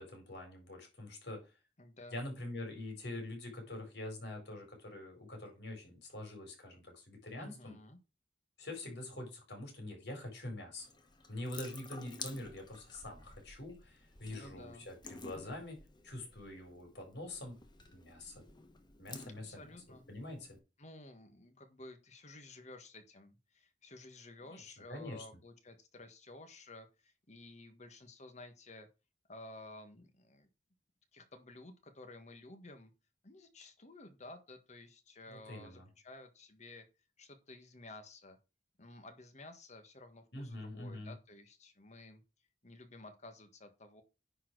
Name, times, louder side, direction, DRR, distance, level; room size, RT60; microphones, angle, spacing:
voice 1, 0.0-1.4 2.1-7.8 8.6-10.9 11.3-15.8 16.0-17.5 17.9-18.4 19.0-19.6 20.1-20.6 24.4-24.6 24.9-25.2 35.3-35.9 40.3-41.1, left 1 dB, 70° left, 3 dB, 4.4 m, -45 dB
voice 2, 1.8-2.2 7.4-8.0 14.3-14.9 19.5-20.0 20.8-28.9 29.3-30.5 31.1-32.9 33.2-36.8 37.2-38.4 38.8-42.2 42.6-44.0, left 2 dB, 40° left, 7 dB, 1.6 m, -53 dB
Water tap faucet / Sink (filling or washing) / Drip, 10.8-20.6, left 4 dB, 25° left, 1.2 m, -52 dB
9.9 x 4.4 x 4.7 m, 0.29 s
head